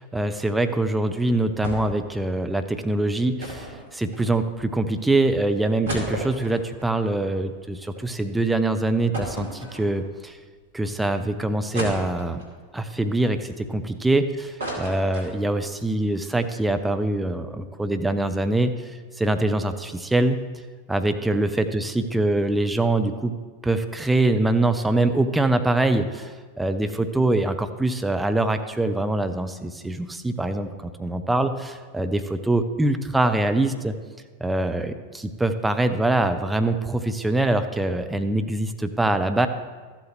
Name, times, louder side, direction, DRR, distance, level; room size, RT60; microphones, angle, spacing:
voice 1, 0.0-10.4 10.7-12.4 12.7-14.3 14.8-20.4 20.9-23.3 23.6-33.9 34.4-39.5, right 2 dB, 5° right, 8 dB, 0.5 m, -24 dB
sound 1, 1.6-2.1 2.3-2.4 3.4-4.7 5.2-5.3 5.6-8.0 8.4-8.5 9.1-10.3 10.8-10.9 11.7-12.6 13.1-14.1 14.4-15.7 16.1-16.2 16.4-16.6, right 1 dB, 70° right, 2.3 m, -34 dB
14.0 x 7.8 x 3.1 m, 1.4 s
figure-of-eight pair, 90°, 0 cm